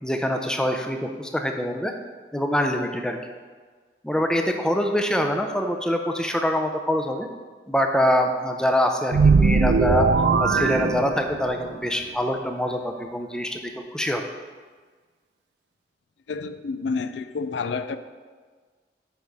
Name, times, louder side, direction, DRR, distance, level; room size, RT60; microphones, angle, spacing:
voice 1, 0.0-1.9 2.3-3.2 4.0-7.3 7.7-10.1 10.4-14.2, equal, 5° left, 0.5 m, -24 dB
sound 1, 9.1-11.6, right 4 dB, 80° right, 0.4 m, -20 dB
voice 2, 16.3-18.0, left 4 dB, 90° left, 0.4 m, -29 dB
8.4 x 4.7 x 5.4 m
head